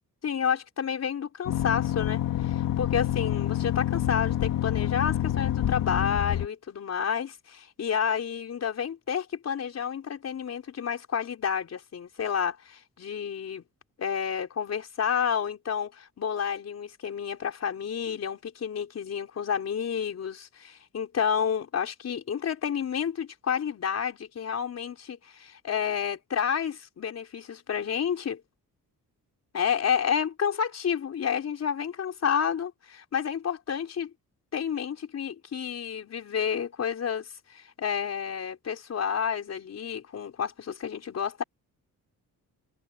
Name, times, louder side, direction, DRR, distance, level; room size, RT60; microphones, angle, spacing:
voice 1, 0.2-13.6 14.0-28.4 29.5-34.1 34.5-41.4, left 7 dB, 50° left, 4.6 m, -30 dB
sound 1, 1.5-6.5, left 12 dB, 75° left, 2.1 m, -27 dB
cardioid pair, 150°, 34 cm